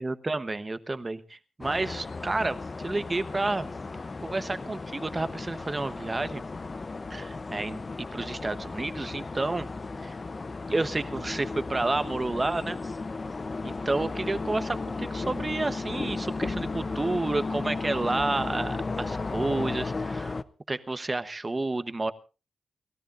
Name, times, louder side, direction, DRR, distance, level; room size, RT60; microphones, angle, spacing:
voice 1, 0.0-3.7 4.2-6.4 7.1-9.7 10.0-10.2 10.7-13.0 13.6-20.4 20.7-22.1, right 2 dB, 25° right, 12 dB, 1.1 m, -30 dB
sound 1, 1.6-20.4, left 3 dB, 35° left, 0.7 m, -35 dB
30.0 x 13.5 x 2.6 m, 0.33 s
cardioid pair, 90°, 0 cm